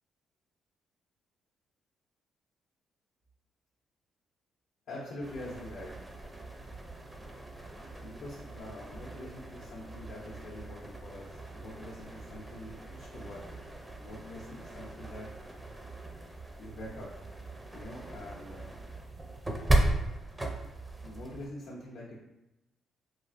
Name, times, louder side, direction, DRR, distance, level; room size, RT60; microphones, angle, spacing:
voice 1, 4.9-5.9 8.0-13.4 14.0-15.3 16.6-17.1 17.7-18.9 21.0-22.2, left 1 dB, 75° left, -5 dB, 0.6 m, -45 dB
sound 1, 5.2-21.5, right 1 dB, 15° right, 0.4 m, -37 dB
3.1 x 2.4 x 2.5 m, 0.93 s
cardioid pair, 90°, 0 cm